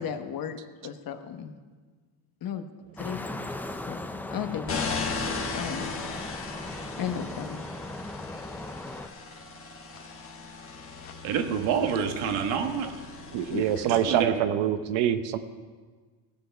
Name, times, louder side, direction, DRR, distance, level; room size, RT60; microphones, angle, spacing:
voice 1, 0.0-1.6 2.4-2.7 3.0-3.2 3.8-4.0 4.3-5.9 7.0-7.6 9.9-10.4 10.9-11.2 13.5-13.8, left 8 dB, 50° left, 8 dB, 1.1 m, -35 dB
sound 1, 3.0-9.1, left 2 dB, 5° left, 0.3 m, -38 dB
sound 2, 4.7-14.2, left 4 dB, 30° left, 1.6 m, -37 dB
voice 2, 11.2-12.9 13.9-14.4, right 7 dB, 90° right, 6 dB, 1.4 m, -27 dB
voice 3, 13.3-15.4, right 10 dB, 75° right, 11 dB, 1.0 m, -25 dB
17.5 x 7.9 x 5.7 m, 1.5 s
cardioid pair, 125°, 46 cm